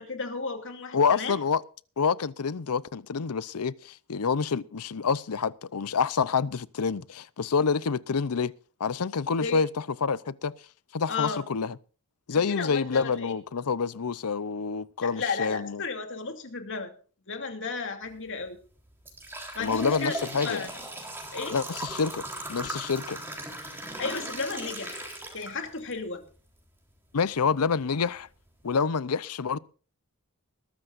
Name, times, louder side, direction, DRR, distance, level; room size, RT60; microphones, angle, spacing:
voice 1, 0.0-1.4 9.4-9.6 11.1-11.4 12.3-13.3 15.0-16.9 17.3-18.6 19.5-20.7 21.3-21.6 24.0-25.1 25.3-26.2, left 4 dB, 60° left, 2.6 m, -33 dB
voice 2, 0.9-1.6 2.0-8.5 8.8-9.7 10.0-10.5 10.9-11.8 12.3-15.8 19.6-20.6 21.5-22.2 22.5-23.2 27.1-28.3 28.6-29.6, left 5 dB, 85° left, 0.7 m, -27 dB
sound 1, 18.1-18.3 18.8-25.9 26.4-26.5 27.3-27.4 27.9-28.0 28.5-28.7, right 1 dB, 10° right, 3.7 m, -38 dB
21.0 x 13.5 x 2.6 m
head